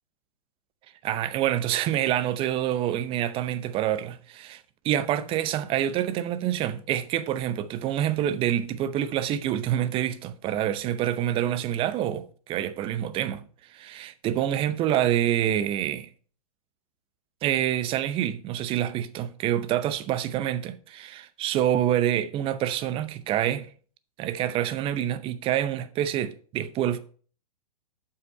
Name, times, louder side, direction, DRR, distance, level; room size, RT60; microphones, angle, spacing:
voice 1, 1.0-13.4 13.7-16.1 17.4-23.7 24.2-27.0, right 11 dB, 30° right, 0.7 m, -27 dB
7.6 x 5.8 x 5.3 m
hypercardioid pair, 115°, 19 cm